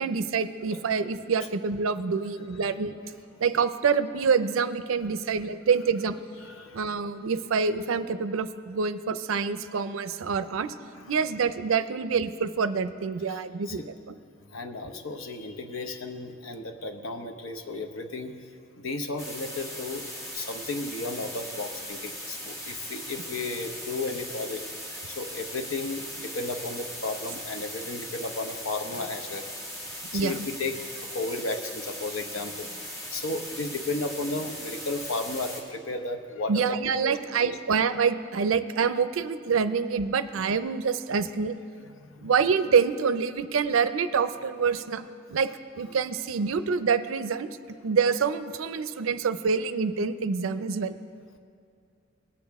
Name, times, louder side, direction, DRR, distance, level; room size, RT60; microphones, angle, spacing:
voice 1, 0.0-3.0 3.4-6.2 6.7-10.7 11.1-13.8 14.1-14.2 30.1-30.5 36.5-41.6 42.2-45.1 45.3-45.5 45.8-47.5 47.8-50.9, right 5 dB, 90° right, 12 dB, 0.5 m, -26 dB
voice 2, 6.4-6.9 10.9-11.3 13.3-13.8 14.5-18.4 18.8-29.5 29.8-36.8 37.0-37.1 37.4-37.6 41.9-42.3, left 2 dB, 85° left, 6 dB, 0.9 m, -34 dB
sound 1, 19.2-35.6, equal, 15° left, 1.9 m, -39 dB
19.5 x 8.4 x 3.5 m, 2.4 s
head